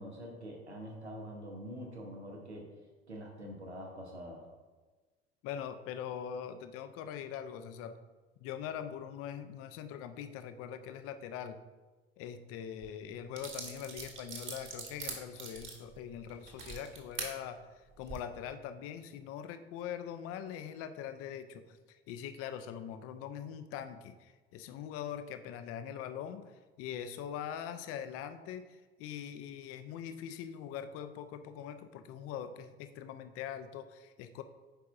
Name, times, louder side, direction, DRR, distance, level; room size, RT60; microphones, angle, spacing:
voice 1, 0.0-2.7 3.1-4.5, equal, 85° right, 0 dB, 1.1 m, -45 dB
voice 2, 5.4-8.0 8.4-11.6 12.2-17.6 18.0-34.4, left 9 dB, 45° left, 10 dB, 0.6 m, -42 dB
sound 1, 12.8-12.9 13.4-17.3 17.9-18.2, right 4 dB, 35° right, 1.5 m, -42 dB
10.0 x 4.7 x 2.4 m, 1.3 s
figure-of-eight pair, 65°, 33 cm